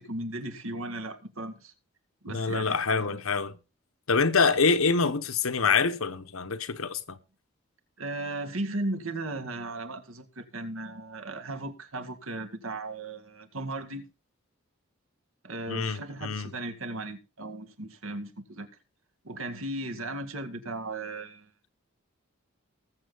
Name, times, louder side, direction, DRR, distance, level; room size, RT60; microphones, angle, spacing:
voice 1, 0.0-1.7 2.2-3.2 8.0-14.1 15.4-18.7 19.2-21.5, right 2 dB, 80° right, 2.0 m, -36 dB
voice 2, 2.3-3.6 4.1-7.2 15.7-16.5, left 4 dB, 80° left, 1.0 m, -26 dB
19.5 x 7.5 x 3.9 m
head